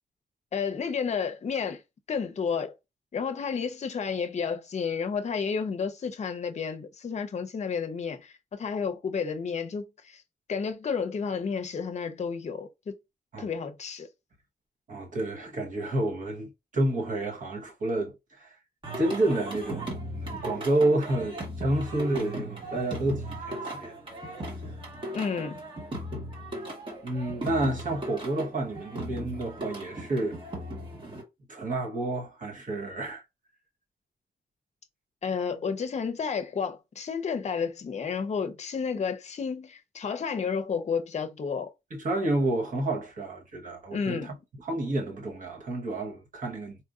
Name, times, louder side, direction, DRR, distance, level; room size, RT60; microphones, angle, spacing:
voice 1, 0.5-1.8 2.1-2.7 3.1-10.2 10.5-13.0 13.4-14.1 25.1-25.6 35.2-41.7 43.9-44.4, left 6 dB, 40° left, 0.6 m, -31 dB
voice 2, 14.9-18.6 19.0-23.9 27.0-30.4 31.5-33.2 41.9-44.3 44.6-46.8, right 1 dB, 50° right, 1.1 m, -29 dB
Singing, 18.8-31.2, right 1 dB, 30° right, 1.3 m, -37 dB
4.2 x 2.5 x 2.4 m
wide cardioid pair, 165°, 17 cm